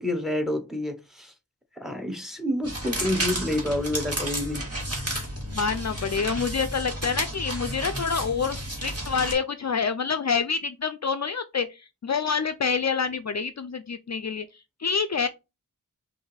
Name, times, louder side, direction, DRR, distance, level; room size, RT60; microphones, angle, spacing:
voice 1, 0.0-1.3 1.8-4.6, left 1 dB, ahead, 1.0 m, -28 dB
sound 1, 2.6-9.3, right 1 dB, 40° right, 1.9 m, -32 dB
voice 2, 5.5-15.3, left 5 dB, 50° left, 0.4 m, -27 dB
5.5 x 2.6 x 3.3 m
wide cardioid pair, 65°, 35 cm